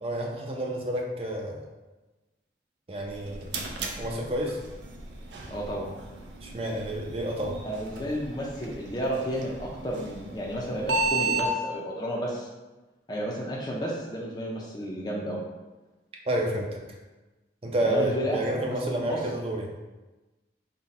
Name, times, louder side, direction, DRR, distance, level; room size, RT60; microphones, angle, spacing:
voice 1, 0.0-1.6 2.9-3.5 4.0-4.6 6.4-7.6 16.3-16.8 17.6-19.7, right 1 dB, 30° right, 1 dB, 0.5 m, -29 dB
sound 1, 3.0-11.5, right 3 dB, 80° right, 0.5 m, -34 dB
voice 2, 5.5-5.9 7.6-12.5 13.1-15.4 17.8-19.2, equal, 25° left, -4 dB, 0.4 m, -32 dB
4.0 x 2.2 x 4.0 m, 1.1 s
head